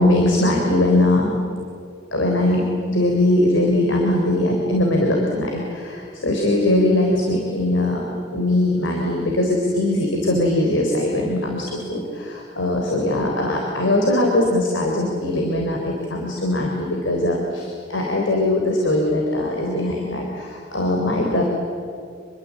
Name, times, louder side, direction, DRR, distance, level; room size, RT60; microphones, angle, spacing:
voice 1, 0.0-1.4 2.1-21.4, left 1 dB, 85° left, 1 dB, 4.0 m, -21 dB
27.5 x 22.5 x 8.5 m, 2.4 s
head